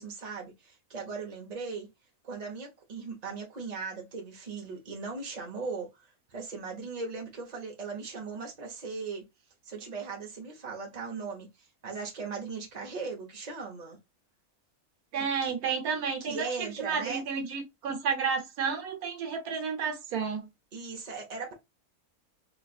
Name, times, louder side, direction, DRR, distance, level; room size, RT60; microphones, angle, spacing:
voice 1, 0.0-1.9 2.2-5.9 6.3-9.2 9.6-11.5 11.8-14.0 15.4-15.5 16.2-17.2 20.7-21.5, right 4 dB, 30° right, 1.0 m, -38 dB
voice 2, 15.1-20.5, right 6 dB, 85° right, 1.4 m, -31 dB
3.3 x 3.1 x 2.4 m
omnidirectional pair, 1.5 m